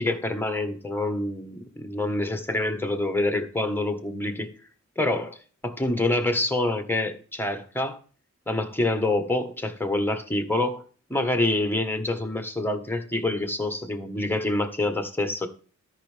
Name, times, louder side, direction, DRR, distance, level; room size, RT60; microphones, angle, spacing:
voice 1, 0.0-4.6 5.0-8.0 8.5-10.8 11.1-15.5, left 2 dB, 5° left, 1.3 m, -26 dB
13.0 x 5.6 x 3.4 m
wide cardioid pair, 85°, 29 cm